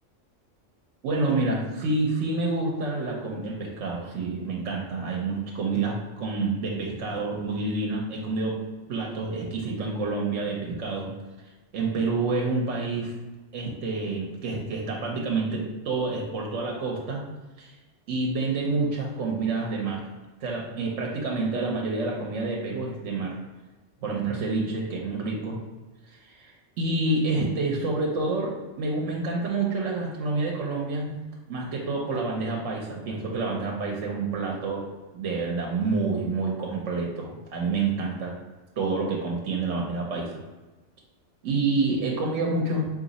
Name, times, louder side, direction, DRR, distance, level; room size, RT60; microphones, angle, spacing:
voice 1, 1.0-8.6 8.9-11.1 11.7-13.1 13.5-17.2 17.6-17.7 18.1-20.0 20.4-23.4 24.0-25.6 26.2-26.4 26.8-31.2 31.5-34.8 35.1-38.3 38.8-40.4 41.4-43.0, right 3 dB, 80° right, -1 dB, 1.0 m, -28 dB
3.9 x 2.8 x 4.0 m, 1.2 s
omnidirectional pair, 1.3 m